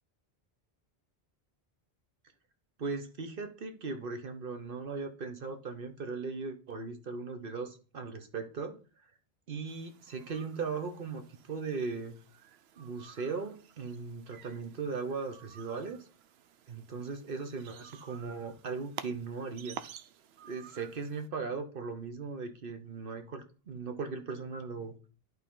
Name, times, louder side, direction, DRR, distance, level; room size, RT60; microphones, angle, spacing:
voice 1, 2.8-8.8 9.5-11.2 11.5-12.2 12.8-16.0 16.7-19.8 20.4-24.9, right 4 dB, 60° right, 6 dB, 1.2 m, -38 dB
sound 1, 9.7-21.3, right 9 dB, 90° right, 0.8 m, -51 dB
11.0 x 3.9 x 3.7 m, 0.37 s
omnidirectional pair, 1.0 m